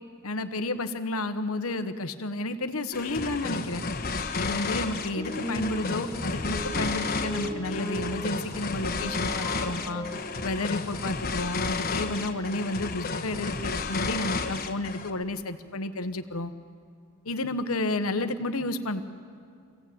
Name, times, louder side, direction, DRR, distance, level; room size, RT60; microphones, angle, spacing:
voice 1, 0.2-3.8 4.3-10.0 10.4-16.5 17.2-19.0, left 2 dB, 90° left, 9 dB, 1.2 m, -31 dB
sound 1, 2.9-15.2, left 4 dB, 45° left, 1.3 m, -32 dB
sound 2, 5.1-8.5 8.7-10.2, equal, ahead, 3.0 m, -37 dB
26.0 x 16.5 x 8.7 m, 2.4 s
head